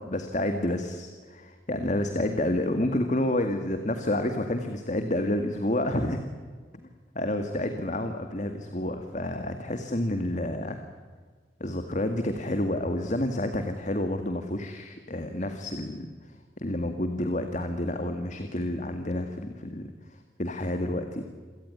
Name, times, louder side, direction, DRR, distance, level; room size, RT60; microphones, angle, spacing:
voice 1, 0.0-6.2 7.2-10.8 11.6-21.2, left 1 dB, 45° left, 7 dB, 2.0 m, -29 dB
27.5 x 18.0 x 9.8 m, 1.5 s
head